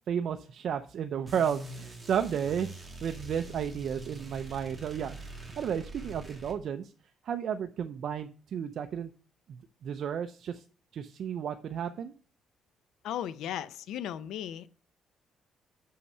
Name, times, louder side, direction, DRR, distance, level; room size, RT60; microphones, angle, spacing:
voice 1, 0.1-2.7 3.0-5.2 5.6-6.9 7.2-9.1 9.5-10.6 10.9-12.1, right 8 dB, 60° right, 0.5 m, -33 dB
sound 1, 1.3-6.6, right 2 dB, 15° right, 1.8 m, -45 dB
voice 2, 13.0-14.7, left 10 dB, 85° left, 0.5 m, -36 dB
6.5 x 5.6 x 5.5 m
cardioid pair, 130°, 0 cm